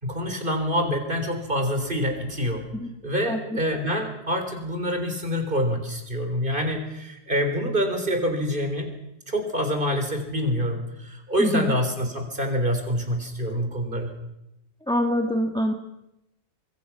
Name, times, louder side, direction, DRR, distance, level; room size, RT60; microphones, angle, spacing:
voice 1, 0.0-2.6 3.0-8.9 9.3-14.1, equal, 25° right, 5 dB, 4.0 m, -26 dB
voice 2, 3.2-3.6 11.4-11.7 14.9-15.7, equal, 5° left, 4 dB, 1.4 m, -25 dB
25.0 x 22.0 x 6.0 m, 0.86 s
omnidirectional pair, 1.9 m